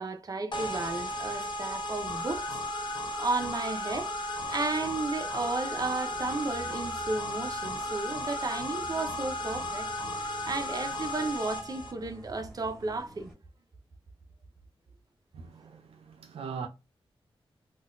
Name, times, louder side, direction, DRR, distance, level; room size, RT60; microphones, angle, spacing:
voice 1, 0.0-2.6 3.2-9.9 10.2-13.3, right 3 dB, 40° right, 0.6 m, -33 dB
sound 1, 0.5-11.9, equal, 55° left, 0.8 m, -35 dB
sound 2, 2.1-11.3, left 6 dB, 90° left, 0.5 m, -42 dB
sound 3, 4.4-13.3, right 1 dB, ahead, 1.7 m, -51 dB
voice 2, 15.3-16.7, right 6 dB, 80° right, 0.5 m, -41 dB
3.8 x 2.3 x 2.5 m
cardioid pair, 70°, 10 cm